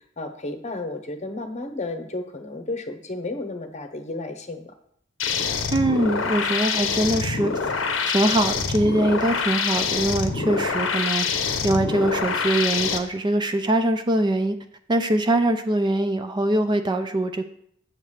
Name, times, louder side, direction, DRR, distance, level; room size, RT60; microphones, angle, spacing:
voice 1, 0.2-4.7, left 2 dB, 35° left, 7 dB, 0.8 m, -32 dB
sound 1, 5.2-13.0, left 5 dB, 80° left, 0.8 m, -25 dB
voice 2, 5.7-7.5 8.0-11.3 11.6-14.6 14.9-17.4, right 1 dB, 25° right, 7 dB, 0.4 m, -22 dB
7.8 x 7.2 x 3.3 m, 0.68 s
head